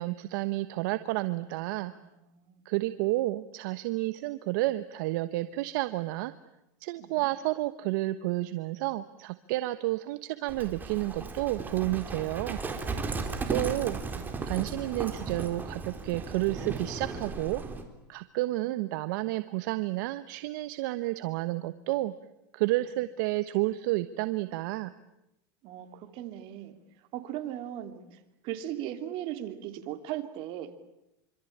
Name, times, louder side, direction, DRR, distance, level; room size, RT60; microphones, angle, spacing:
voice 1, 0.0-1.9 2.6-6.3 6.8-12.6 13.5-14.0 14.5-17.6 18.1-22.1 22.5-24.9, right 18 dB, 70° right, 12 dB, 1.2 m, -30 dB
voice 2, 1.8-2.7 7.0-7.3 18.6-18.8 22.8-22.9 25.6-30.8, right 12 dB, 50° right, 8 dB, 3.1 m, -39 dB
Livestock farm animals working animals, 10.5-17.8, right 4 dB, 15° right, 3.9 m, -36 dB
26.0 x 26.0 x 8.8 m, 0.87 s
supercardioid pair, 125°, 11 cm